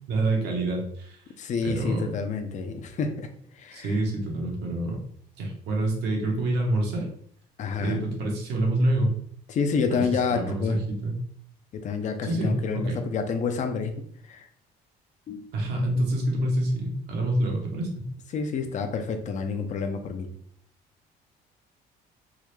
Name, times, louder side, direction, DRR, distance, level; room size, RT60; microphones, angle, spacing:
voice 1, 0.1-1.2 1.6-2.1 3.7-5.0 5.4-7.1 7.8-9.1 9.9-11.2 12.2-13.0 15.5-18.1, right 1 dB, 80° right, 0 dB, 1.0 m, -27 dB
voice 2, 1.4-3.3 3.5-4.0 7.6-8.0 9.5-10.8 11.7-13.9 14.2-14.5 15.3-15.4 15.9-16.1 18.3-20.3, left 5 dB, 45° left, 6 dB, 0.5 m, -29 dB
3.6 x 2.1 x 3.1 m, 0.63 s
cardioid pair, 110°, 17 cm